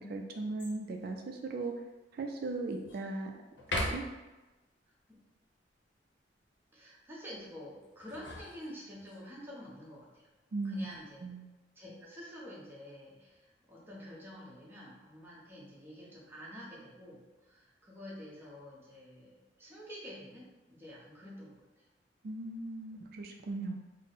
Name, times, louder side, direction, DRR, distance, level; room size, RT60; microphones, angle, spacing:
voice 1, 0.0-1.7 2.1-3.3 3.7-4.0 10.5-10.9 11.2-11.5 22.2-23.8, right 2 dB, 55° right, 3 dB, 0.3 m, -38 dB
sound 1, 0.6-1.1 1.6-1.7 2.2-3.1 3.6-4.3 7.8-9.2 10.6-11.1, left 1 dB, 80° left, 0.8 m, -39 dB
voice 2, 6.7-10.3 10.6-11.2 11.7-21.9, equal, 10° right, -6 dB, 0.9 m, -48 dB
3.6 x 2.0 x 3.9 m, 1.1 s
head